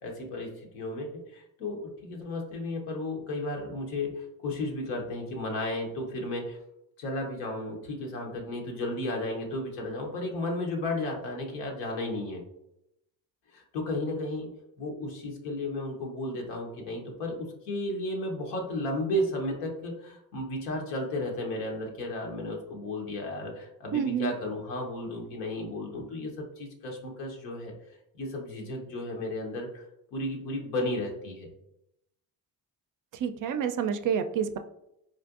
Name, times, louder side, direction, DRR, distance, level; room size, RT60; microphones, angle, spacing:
voice 1, 0.0-6.6 7.0-12.4 13.5-14.5 14.8-27.7 28.2-29.8 30.1-31.5, left 1 dB, 85° left, 1 dB, 1.0 m, -34 dB
voice 2, 23.9-24.3 33.2-34.6, right 7 dB, 45° right, 9 dB, 0.4 m, -28 dB
4.1 x 2.5 x 2.4 m, 0.81 s
hypercardioid pair, 60°, 47 cm